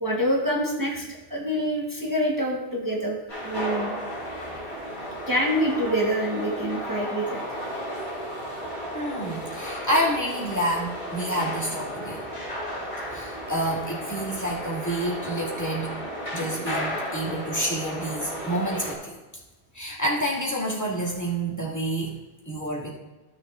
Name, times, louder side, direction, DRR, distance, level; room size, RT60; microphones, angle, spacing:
voice 1, 0.0-3.2 3.4-3.9 5.3-7.4, equal, 20° right, -3 dB, 1.3 m, -26 dB
sound 1, 3.3-18.9, equal, 85° left, 3.3 m, -34 dB
voice 2, 8.9-12.2 13.1-16.0 16.3-19.2 19.7-22.2 22.5-22.9, right 1 dB, 15° left, -5 dB, 2.3 m, -28 dB
15.5 x 6.9 x 2.5 m, 1.1 s
omnidirectional pair, 1.1 m